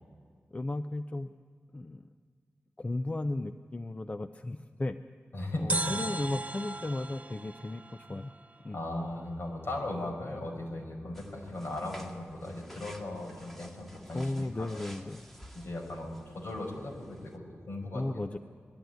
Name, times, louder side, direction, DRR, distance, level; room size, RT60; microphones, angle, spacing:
voice 1, 0.5-1.3 1.7-2.0 2.8-5.0 5.6-8.4 8.6-8.8 14.1-15.3 17.9-18.4, left 2 dB, 30° left, 9 dB, 0.6 m, -35 dB
voice 2, 5.3-5.9 8.7-14.8 15.5-18.0, left 1 dB, 60° left, 0 dB, 5.7 m, -37 dB
sound 1, 5.7-8.8 9.0-9.1, right 2 dB, 30° right, 0.9 m, -37 dB
sound 2, 11.1-17.4, equal, 5° left, 2.0 m, -52 dB
21.0 x 14.0 x 9.3 m, 2.1 s
wide cardioid pair, 95°, 4 cm